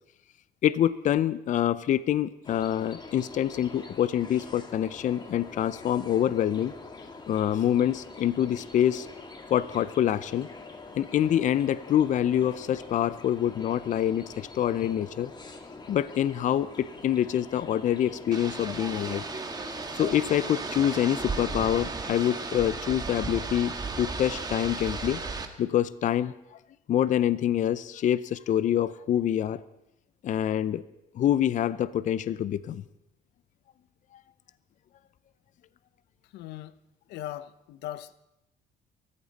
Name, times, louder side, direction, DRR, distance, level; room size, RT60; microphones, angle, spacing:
voice 1, 0.6-6.7 7.3-9.1 9.5-10.5 11.0-15.3 15.9-19.2 19.9-25.2 25.6-26.6 26.9-29.6 30.2-30.8 31.1-32.8 34.1-34.2, left 10 dB, 50° left, 16 dB, 0.5 m, -26 dB
sound 1, 2.4-21.9, left 3 dB, 25° left, 1.9 m, -45 dB
sound 2, 18.3-25.5, right 4 dB, 25° right, 1.7 m, -35 dB
voice 2, 36.3-36.8 37.1-38.2, left 13 dB, 85° left, 15 dB, 0.7 m, -39 dB
23.0 x 14.0 x 4.1 m, 0.90 s
cardioid pair, 110°, 17 cm